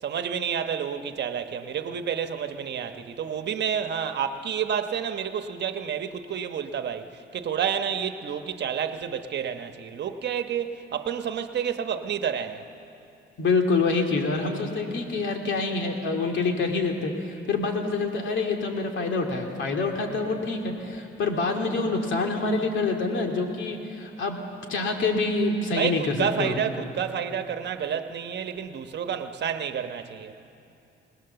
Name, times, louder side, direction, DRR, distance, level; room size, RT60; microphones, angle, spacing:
voice 1, 0.0-12.7 25.7-30.3, right 8 dB, 60° right, 1.1 m, -29 dB
voice 2, 13.4-24.4 24.7-26.6, left 3 dB, 70° left, 2.6 m, -26 dB
21.5 x 20.0 x 7.0 m
cardioid pair, 90°, 20 cm